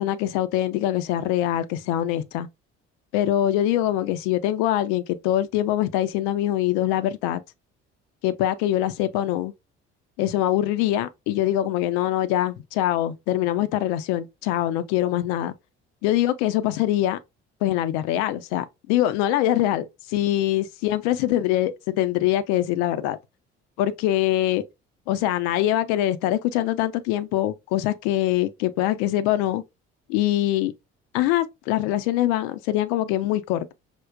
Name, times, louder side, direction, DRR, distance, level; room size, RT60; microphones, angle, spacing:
voice 1, 0.0-2.5 3.1-7.4 8.2-9.5 10.2-15.5 16.0-17.2 17.6-23.2 23.8-24.6 25.1-29.6 30.1-30.7 31.1-33.7, left 13 dB, 55° left, 0.4 m, -23 dB
5.0 x 2.1 x 2.2 m
figure-of-eight pair, 50°, 36 cm